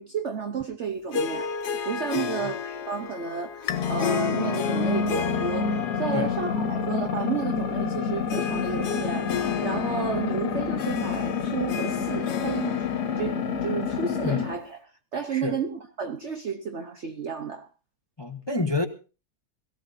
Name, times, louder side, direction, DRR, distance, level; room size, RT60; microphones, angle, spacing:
voice 1, 0.0-1.5 1.8-12.8 13.2-14.8 15.1-17.7, right 6 dB, 50° right, 1.0 m, -32 dB
Harp, 1.1-14.8, left 6 dB, 85° left, 1.5 m, -34 dB
sound 1, 3.7-14.6, left 6 dB, 70° left, 2.0 m, -28 dB
voice 2, 18.2-18.9, left 3 dB, 25° left, 0.6 m, -28 dB
22.0 x 15.5 x 2.7 m
omnidirectional pair, 1.7 m